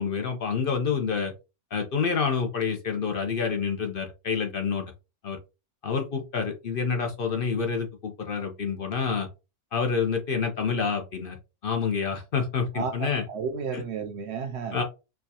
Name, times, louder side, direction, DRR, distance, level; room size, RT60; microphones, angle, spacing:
voice 1, 0.0-1.3 1.7-4.8 5.2-5.4 5.8-9.3 9.7-11.4 11.6-13.2 13.7-13.8 14.7-14.8, left 5 dB, 55° left, 0.8 m, -28 dB
voice 2, 12.7-14.8, right 5 dB, 70° right, 0.8 m, -32 dB
4.5 x 2.3 x 2.7 m
omnidirectional pair, 1.3 m